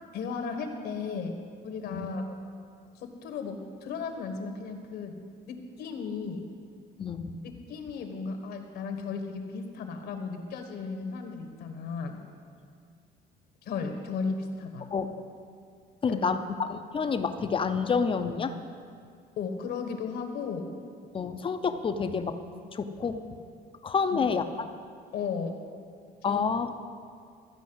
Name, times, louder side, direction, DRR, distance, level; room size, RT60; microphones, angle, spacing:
voice 1, 0.1-2.2 2.9-5.2 5.5-6.4 7.7-12.2 13.6-14.9 16.1-16.3 19.4-20.7 24.1-24.2 25.1-25.6 26.3-26.4, left 5 dB, 70° left, 5 dB, 1.4 m, -35 dB
voice 2, 7.0-7.4 14.9-15.1 16.0-18.6 21.1-22.4 22.7-23.4 23.8-24.7 26.2-26.7, left 5 dB, 30° left, 9 dB, 0.6 m, -29 dB
13.5 x 5.2 x 8.0 m, 2.2 s
cardioid pair, 110°, 17 cm